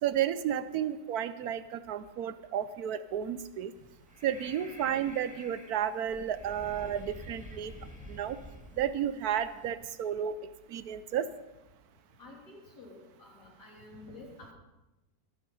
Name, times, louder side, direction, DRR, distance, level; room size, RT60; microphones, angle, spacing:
voice 1, 0.0-3.7 4.2-7.7 8.1-8.4 8.8-10.3 10.7-11.3, right 9 dB, 70° right, 13 dB, 1.1 m, -32 dB
Breathing, 3.7-9.7, equal, 5° right, 1.7 m, -49 dB
voice 2, 12.2-14.5, left 2 dB, 75° left, -2 dB, 3.8 m, -50 dB
13.5 x 11.0 x 5.5 m, 1.0 s
omnidirectional pair, 1.8 m